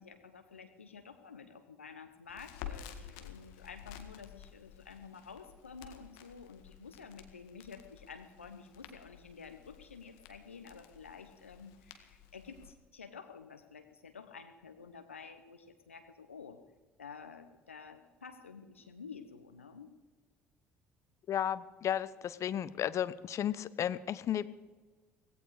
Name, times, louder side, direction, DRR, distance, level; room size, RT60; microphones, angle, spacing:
voice 1, 0.0-16.6 17.0-19.9, left 5 dB, 90° left, 8 dB, 1.0 m, -51 dB
Crackle, 2.3-12.7, left 10 dB, 70° left, 1.8 m, -51 dB
voice 2, 21.3-24.5, left 10 dB, 50° left, 16 dB, 0.9 m, -33 dB
17.5 x 16.5 x 5.0 m, 1.3 s
figure-of-eight pair, 55°, 7 cm